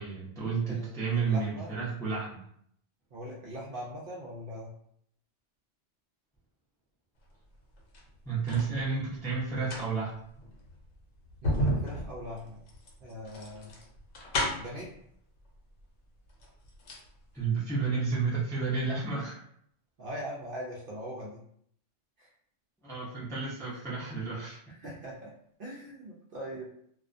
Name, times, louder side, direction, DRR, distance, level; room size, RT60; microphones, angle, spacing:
voice 1, 0.0-2.4 8.2-10.1 17.3-19.4 22.8-24.6, right 5 dB, 5° left, -7 dB, 0.3 m, -31 dB
voice 2, 0.6-1.7 3.1-4.7 11.4-12.6 13.0-13.7 14.5-14.9 20.0-21.4 22.2-22.3 24.7-25.3 25.6-26.6, equal, 60° right, -4 dB, 0.6 m, -41 dB
sound 1, 7.8-8.7 9.5-14.8 15.8-15.9 16.3-17.1 17.4-17.5, equal, 75° left, 0.9 m, -33 dB
2.3 x 2.1 x 2.5 m, 0.67 s
omnidirectional pair, 1.3 m